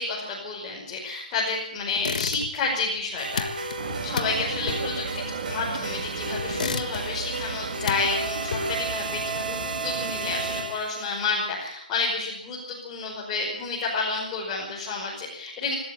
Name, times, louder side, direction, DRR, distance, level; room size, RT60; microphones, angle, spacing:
voice 1, 0.0-3.5 4.0-5.2 5.5-15.7, left 4 dB, 20° left, -4 dB, 5.5 m, -30 dB
sound 1, 2.0-2.8 3.0-5.9 6.4-7.3 7.6-8.9, left 5 dB, 60° left, 1.8 m, -33 dB
sound 2, 3.2-11.3, right 2 dB, 65° right, 6.3 m, -33 dB
sound 3, 3.8-10.7, right 5 dB, 50° right, 2.3 m, -35 dB
25.5 x 13.0 x 8.9 m, 0.76 s
hypercardioid pair, 165°, 5 cm